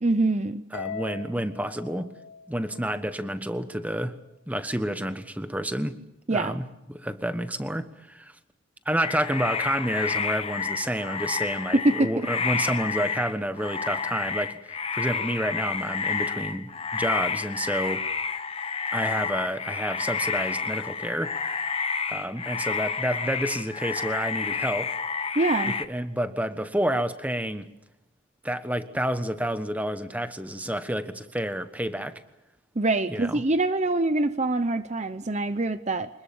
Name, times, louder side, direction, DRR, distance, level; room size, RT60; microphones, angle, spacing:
voice 1, 0.0-0.6 6.3-6.6 11.7-12.3 25.4-25.7 32.8-36.1, right 2 dB, 35° right, 0.7 m, -24 dB
Harp, 0.7-3.2, left 5 dB, 60° left, 3.8 m, -39 dB
voice 2, 0.7-2.1 2.5-4.2 4.5-6.0 6.3-8.3 8.8-18.0 18.9-21.3 22.1-25.0 25.9-27.7 28.4-32.2 33.1-33.4, right 1 dB, 5° right, 1.2 m, -29 dB
sound 1, 9.0-25.9, left 5 dB, 30° left, 1.1 m, -30 dB
26.0 x 21.0 x 7.2 m
head